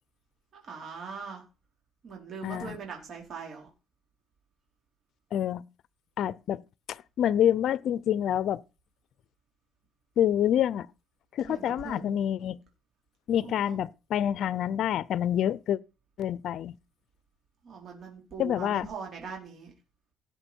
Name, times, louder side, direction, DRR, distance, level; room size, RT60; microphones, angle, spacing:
voice 1, 0.5-1.4 2.0-3.7 11.5-12.2 13.4-13.8 17.6-19.7, right 5 dB, 45° right, 4.5 m, -41 dB
voice 2, 2.4-2.8 5.3-5.6 6.2-6.6 6.9-8.6 10.2-10.9 11.3-12.6 13.3-15.8 16.2-16.7 18.4-18.9, left 10 dB, 55° left, 0.6 m, -27 dB
17.0 x 7.8 x 4.6 m
cardioid pair, 135°, 0 cm